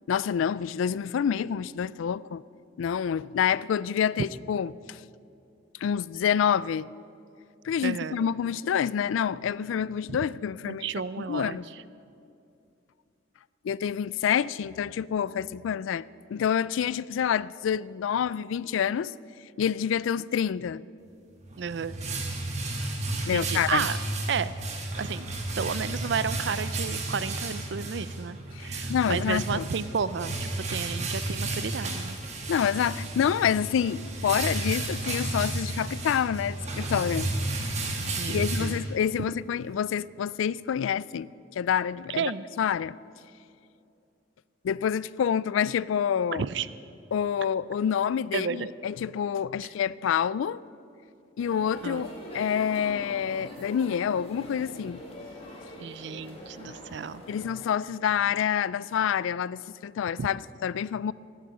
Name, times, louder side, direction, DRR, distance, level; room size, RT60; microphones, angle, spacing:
voice 1, 0.1-2.4 2.8-5.0 5.8-6.9 7.6-10.9 11.2-11.7 13.6-16.0 16.3-19.1 19.6-20.8 23.3-23.9 28.6-29.7 32.5-37.3 38.3-42.3 42.6-43.0 44.6-46.4 47.1-50.6 51.4-55.0 56.6-56.7 57.3-61.1, left 8 dB, 80° left, 0.3 m, -27 dB
voice 2, 7.8-8.2 10.6-11.6 21.6-22.0 23.3-24.0 24.3-24.5 25.0-25.3 25.6-32.2 38.1-38.8 42.2-42.4 46.3-46.7 48.3-48.7 51.8-52.1 55.8-57.2 60.2-60.3, right 6 dB, 60° right, 0.4 m, -32 dB
sound 1, 21.4-39.3, right 2 dB, 35° right, 1.6 m, -32 dB
sound 2, 51.4-57.5, equal, 30° left, 2.3 m, -43 dB
16.5 x 9.1 x 6.8 m
head